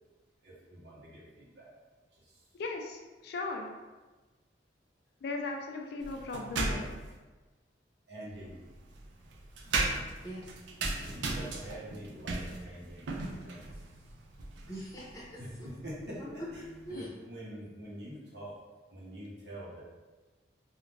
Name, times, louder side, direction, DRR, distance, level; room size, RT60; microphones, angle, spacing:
voice 1, 0.4-1.7 2.1-2.4 8.1-8.6 11.0-13.6 15.4-15.5 15.8-16.2 16.9-18.5 18.9-19.8, right 1 dB, 65° right, -6 dB, 0.9 m, -45 dB
voice 2, 2.5-3.7 5.2-7.0, left 3 dB, 60° left, 2 dB, 0.3 m, -37 dB
sound 1, 6.0-7.2 8.3-17.0, right 3 dB, 80° right, 0.4 m, -37 dB
voice 3, 14.7-15.7 16.1-17.1, equal, 20° left, -6 dB, 0.7 m, -43 dB
2.4 x 2.1 x 3.1 m, 1.2 s
head